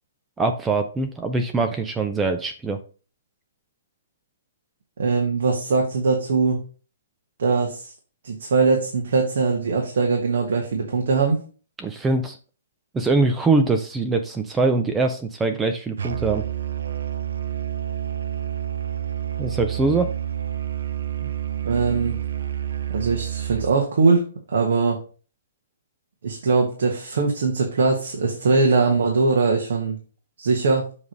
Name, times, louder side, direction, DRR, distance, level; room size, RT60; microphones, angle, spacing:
voice 1, 0.4-2.8 11.8-12.4 12.9-16.4 19.4-20.1, right 3 dB, 5° right, 7 dB, 0.4 m, -23 dB
voice 2, 5.0-6.6 7.4-7.9 8.2-11.4 21.6-22.1 22.9-25.0 26.2-30.0 30.4-30.8, right 4 dB, 60° right, 1 dB, 1.4 m, -21 dB
Musical instrument, 16.0-23.8, right 10 dB, 80° right, 0.7 m, -29 dB
7.2 x 3.3 x 5.2 m, 0.37 s
hypercardioid pair, 175°, 0 cm